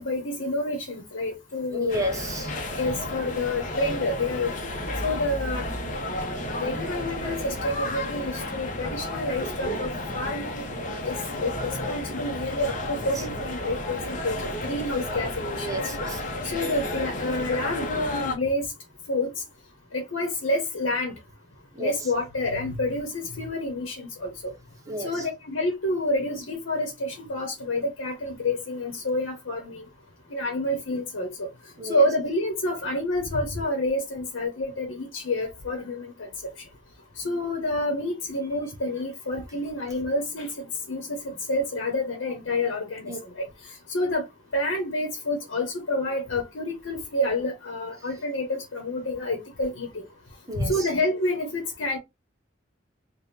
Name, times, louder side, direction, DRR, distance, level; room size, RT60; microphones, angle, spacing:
voice 1, 0.0-2.0 2.8-4.5 5.0-5.7 6.6-10.6 11.0-11.2 11.4-11.5 11.9-15.7 16.4-18.6 19.1-19.3 19.9-21.1 21.8-24.5 25.0-29.8 30.3-31.5 31.9-36.3 37.2-40.5 40.9-43.1 43.4-43.5 43.9-44.2 44.5-49.9 50.6-52.0, left 1 dB, 90° left, 0.9 m, -28 dB
voice 2, 1.7-2.8 12.9-13.1 15.4-16.2 21.8-21.9 24.9-25.2 31.8-32.0 43.1-43.2 50.5-50.9, right 1 dB, 15° right, 0.7 m, -32 dB
sound 1, 1.9-18.4, left 1 dB, 40° left, 0.8 m, -32 dB
3.4 x 2.2 x 4.1 m
head